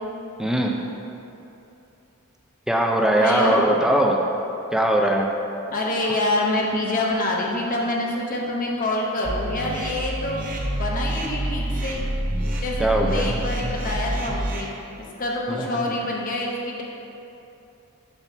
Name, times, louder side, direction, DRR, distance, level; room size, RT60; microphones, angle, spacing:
voice 1, 0.4-0.8 2.7-4.2 4.7-5.3 12.8-13.4 15.5-15.9, right 1 dB, 5° right, 0 dB, 0.4 m, -21 dB
voice 2, 3.2-3.6 5.7-12.0 12.6-16.8, left 1 dB, 40° left, -2 dB, 0.7 m, -26 dB
sound 1, 9.2-14.6, right 1 dB, 40° right, 0.7 m, -27 dB
6.9 x 2.9 x 5.8 m, 2.8 s
head